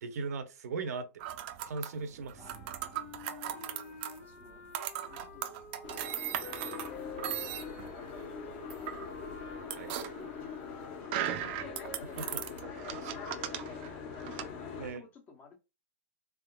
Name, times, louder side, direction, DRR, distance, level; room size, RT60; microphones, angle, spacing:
voice 1, 0.0-1.1 1.6-2.4 9.8-9.9 12.0-13.1 14.8-15.1, right 4 dB, 85° right, 0.7 m, -39 dB
sound 1, 1.2-14.5, right 11 dB, 40° right, 0.4 m, -39 dB
sound 2, 2.3-11.0, left 5 dB, 70° left, 1.2 m, -49 dB
voice 2, 3.5-4.6 5.0-5.7 7.7-8.9 10.2-11.4 12.9-14.1 14.7-15.6, left 4 dB, 20° left, 0.6 m, -56 dB
Boat Water vehicle, 5.8-14.9, left 6 dB, 45° left, 1.0 m, -43 dB
3.8 x 3.5 x 2.2 m
supercardioid pair, 155°, 8 cm